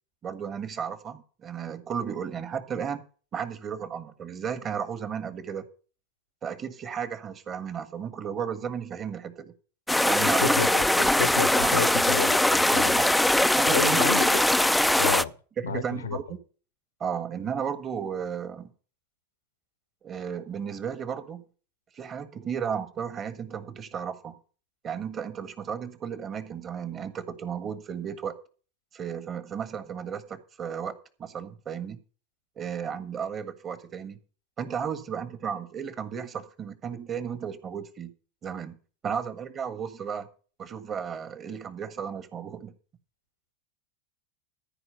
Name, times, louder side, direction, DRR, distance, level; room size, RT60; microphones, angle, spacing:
voice 1, 0.2-3.0 3.3-5.6 6.4-9.5 10.0-10.6 10.9-11.3 11.6-11.9 13.4-14.0 15.7-16.4 17.0-18.7 20.0-21.4 21.9-24.4 24.8-28.3 28.9-32.0 32.6-34.2 34.6-38.1 38.4-38.8 39.0-40.3 40.6-42.7, right 7 dB, 35° right, 1.6 m, -34 dB
sound 1, 9.9-15.2, left 1 dB, 5° left, 0.5 m, -21 dB
voice 2, 10.2-13.0 13.7-14.4 15.0-15.3 15.6-16.2, left 6 dB, 85° left, 1.1 m, -30 dB
14.0 x 4.8 x 8.7 m
hypercardioid pair, 90°, 0 cm